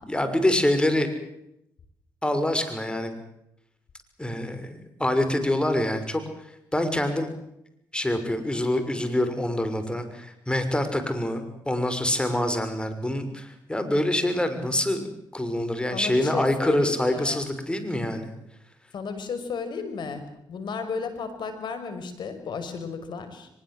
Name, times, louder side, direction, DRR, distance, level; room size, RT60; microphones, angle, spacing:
voice 1, 0.0-1.1 2.2-3.1 4.2-6.2 6.7-7.3 7.9-18.3, left 1 dB, 10° left, 8 dB, 6.3 m, -25 dB
voice 2, 15.9-17.4 18.9-20.2 20.5-23.5, left 5 dB, 65° left, 9 dB, 5.7 m, -33 dB
23.5 x 21.5 x 7.8 m, 0.81 s
supercardioid pair, 55°, 8 cm